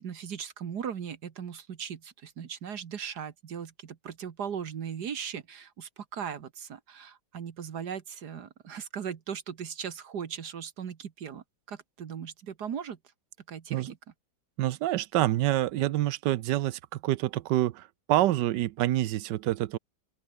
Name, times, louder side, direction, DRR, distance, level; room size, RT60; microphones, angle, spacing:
voice 1, 0.0-13.0 13.5-14.0, right 7 dB, 65° right, 1.9 m, -38 dB
voice 2, 14.6-19.8, right 14 dB, 85° right, 1.3 m, -27 dB
open air
omnidirectional pair, 1.9 m